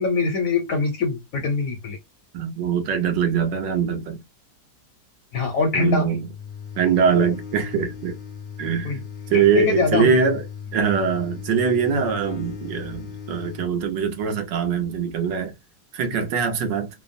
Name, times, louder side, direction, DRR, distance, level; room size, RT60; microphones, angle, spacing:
voice 1, 0.0-2.0 5.3-6.1 8.8-9.0 9.3-10.2, left 4 dB, 65° left, 0.8 m, -23 dB
voice 2, 2.3-4.2 5.7-6.3 6.8-8.2 8.6-9.0 9.3-10.4 10.7-15.5 15.9-16.9, right 6 dB, 75° right, 1.4 m, -22 dB
sound 1, 6.1-13.7, left 6 dB, 85° left, 0.4 m, -37 dB
3.4 x 2.0 x 2.5 m
omnidirectional pair, 2.0 m